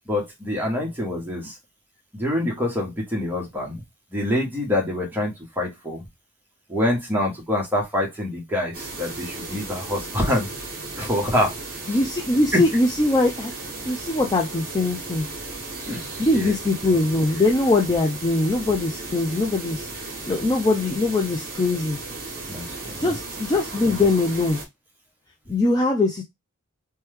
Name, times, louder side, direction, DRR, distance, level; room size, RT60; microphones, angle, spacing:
voice 1, 0.1-1.6 2.1-3.8 4.1-6.0 6.7-10.5 11.0-11.6 11.8-12.0 15.9-16.6 22.5-23.2, left 1 dB, 10° right, -2 dB, 1.0 m, -26 dB
sound 1, 8.7-24.7, right 3 dB, 45° right, 1.1 m, -35 dB
voice 2, 11.9-13.5 13.8-15.3 16.2-22.0 23.0-24.6 25.5-26.2, left 2 dB, 20° left, 0 dB, 0.4 m, -22 dB
3.0 x 2.2 x 3.2 m, 0.18 s
head